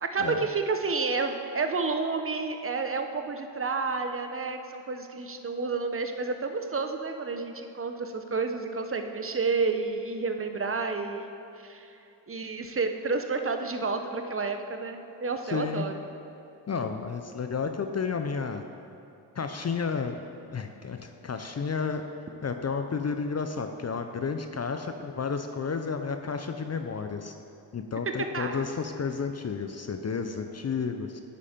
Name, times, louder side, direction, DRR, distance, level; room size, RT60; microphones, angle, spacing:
voice 1, 0.0-12.0 12.3-16.0 28.1-28.7, right 4 dB, 30° right, 6 dB, 0.8 m, -30 dB
voice 2, 15.5-15.9 16.7-18.6 19.3-20.1 20.5-22.0 22.4-27.3 27.7-31.2, left 5 dB, 35° left, 7 dB, 0.5 m, -31 dB
10.5 x 4.9 x 4.3 m, 2.9 s
cardioid pair, 45°, 44 cm